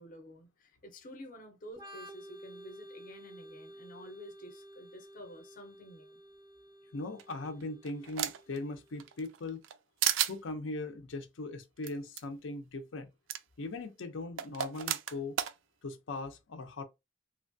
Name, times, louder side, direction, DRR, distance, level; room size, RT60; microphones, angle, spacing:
voice 1, 0.0-6.2, equal, 45° left, 0.6 m, -50 dB
Organ, 1.7-9.2, right 1 dB, 20° right, 0.4 m, -52 dB
voice 2, 6.9-9.6 10.3-13.1 13.6-15.4 15.8-16.8, left 2 dB, 90° left, 0.6 m, -39 dB
sound 1, 7.2-8.6 9.0-9.8 10.0-10.4 11.8-11.9 12.2-12.3 13.3-13.4 14.4-15.5, right 11 dB, 85° right, 0.3 m, -32 dB
3.0 x 2.2 x 2.6 m
head